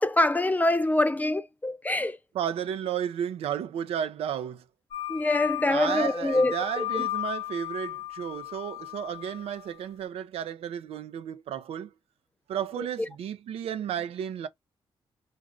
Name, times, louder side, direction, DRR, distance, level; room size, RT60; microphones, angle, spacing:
voice 1, 0.0-2.2 5.1-6.5 6.9-7.0, left 2 dB, 15° left, 0.4 m, -24 dB
voice 2, 2.3-4.6 5.6-11.9 12.5-14.5, right 9 dB, 90° right, 0.5 m, -33 dB
sound 1, 4.9-9.7, left 16 dB, 90° left, 0.8 m, -35 dB
2.5 x 2.5 x 3.1 m
cardioid pair, 80°, 10 cm